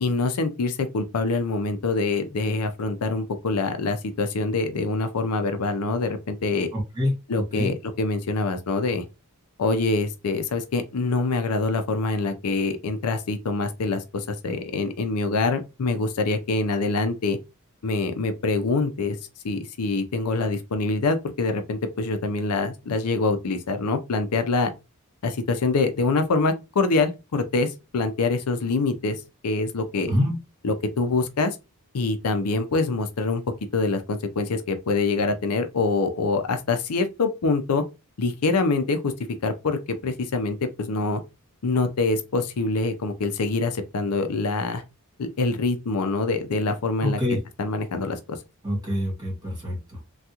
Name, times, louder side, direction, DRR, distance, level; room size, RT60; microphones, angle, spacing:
voice 1, 0.0-6.7 7.3-9.0 9.6-17.4 17.8-19.2 19.4-24.7 25.2-30.1 30.6-31.6 31.9-33.4 33.7-37.8 38.2-39.1 39.4-41.2 41.6-44.8 45.2-47.2 47.6-48.4, left 3 dB, 85° left, 0.5 m, -25 dB
voice 2, 6.7-7.1 7.5-7.7 30.1-30.4 47.0-47.4 48.6-50.0, left 1 dB, 20° right, 1.9 m, -26 dB
3.5 x 2.3 x 2.8 m
head